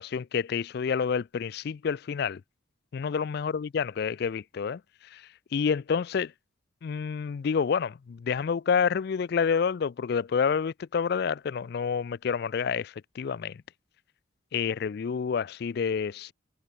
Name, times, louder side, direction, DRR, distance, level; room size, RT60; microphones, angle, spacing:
voice 1, 0.0-2.4 2.9-4.8 5.1-5.2 5.5-6.3 6.8-13.6 14.5-16.3, left 6 dB, 55° left, 0.3 m, -28 dB
head